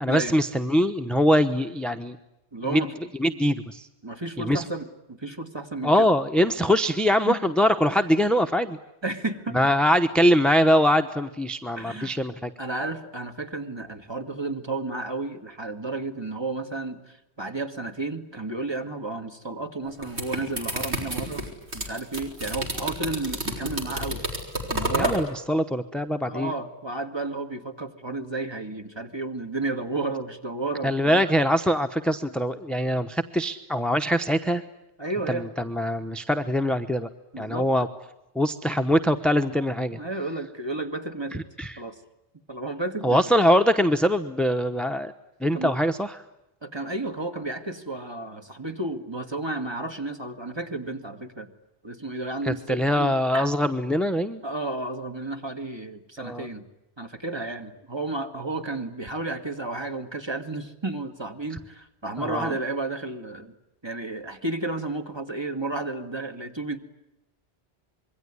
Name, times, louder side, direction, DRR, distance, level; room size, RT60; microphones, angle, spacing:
voice 1, 0.0-2.2 2.7-2.8 3.2-3.9 4.4-4.6 5.8-8.8 9.5-12.5 25.0-26.5 30.8-34.6 35.3-37.1 37.4-37.9 38.4-40.0 41.6-41.7 43.0-45.1 45.4-46.1 52.4-54.4 56.2-56.5 62.2-62.5, equal, ahead, 7 dB, 0.9 m, -23 dB
voice 2, 2.5-2.9 4.0-6.1 7.3-7.5 9.0-9.7 11.8-12.1 12.6-21.4 21.7-24.2 24.7-25.2 26.2-31.3 35.0-35.5 37.3-37.7 39.1-39.2 39.9-41.4 41.8-42.0 42.5-43.2 45.5-45.8 46.6-51.5 51.8-53.6 54.4-56.7 57.0-63.6 63.8-66.8, right 2 dB, 25° right, 6 dB, 2.3 m, -32 dB
sound 1, 19.8-25.2, equal, 75° right, 5.7 m, -30 dB
26.5 x 23.0 x 9.9 m, 0.90 s
omnidirectional pair, 1.1 m